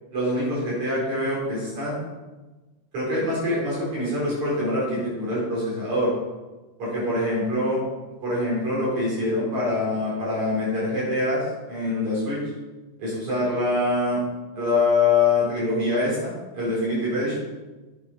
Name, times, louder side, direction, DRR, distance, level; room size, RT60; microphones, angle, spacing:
voice 1, 0.1-2.0 2.9-6.1 6.8-7.8 8.2-12.4 13.0-14.2 14.5-17.4, left 2 dB, 60° right, -7 dB, 5.5 m, -24 dB
9.0 x 7.2 x 6.4 m, 1.2 s
omnidirectional pair, 3.7 m